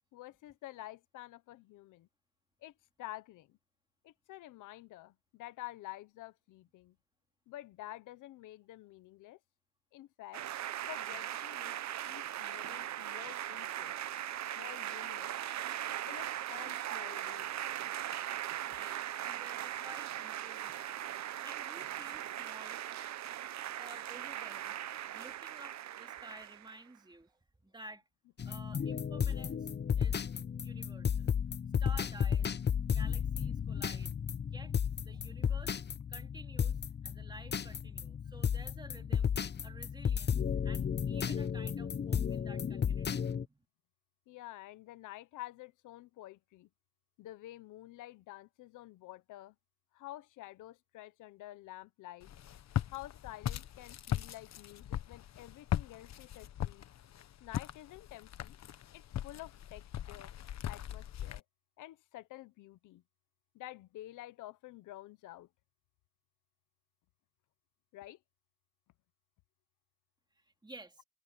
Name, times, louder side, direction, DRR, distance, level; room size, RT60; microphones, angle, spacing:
voice 1, 0.1-2.1 2.6-2.7 3.0-3.6 4.0-7.0 7.5-9.4 9.9-10.4 10.8-13.9 14.5-15.3 16.0-17.5 41.0-41.1 44.3-46.7 47.2-49.5 49.9-52.3 52.9-56.8 57.4-58.6 58.9-60.3 60.6-61.4 61.8-63.0 63.5-65.5 67.9-68.2, left 16 dB, 90° left, 1.1 m, -49 dB
sound 1, 10.3-26.8, right 12 dB, 65° right, 1.0 m, -39 dB
voice 2, 18.7-22.8 23.8-24.7 25.1-28.0 28.4-30.2 30.6-31.3 31.8-32.5 32.8-34.1 34.4-34.7 35.0-35.8 36.1-39.3 39.6-43.7 70.4-71.0, right 2 dB, 15° right, 2.6 m, -53 dB
sound 2, 28.4-43.5, left 7 dB, 35° left, 0.8 m, -34 dB
Walk footsteps, 52.2-61.4, left 11 dB, 60° left, 1.2 m, -39 dB
cardioid pair, 90°, 30 cm